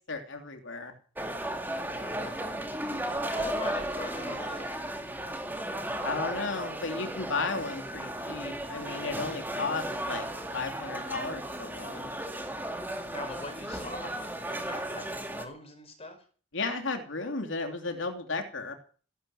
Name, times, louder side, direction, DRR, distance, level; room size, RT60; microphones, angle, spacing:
voice 1, 0.1-1.0 6.0-10.3 10.5-12.1 16.5-18.7, left 3 dB, 70° left, 4 dB, 3.0 m, -34 dB
sound 1, 1.2-15.5, right 1 dB, 10° right, 2.2 m, -35 dB
voice 2, 1.9-2.8 3.3-4.9 13.1-16.2, left 1 dB, 30° left, 6 dB, 5.2 m, -42 dB
15.0 x 12.0 x 7.8 m, 0.41 s
head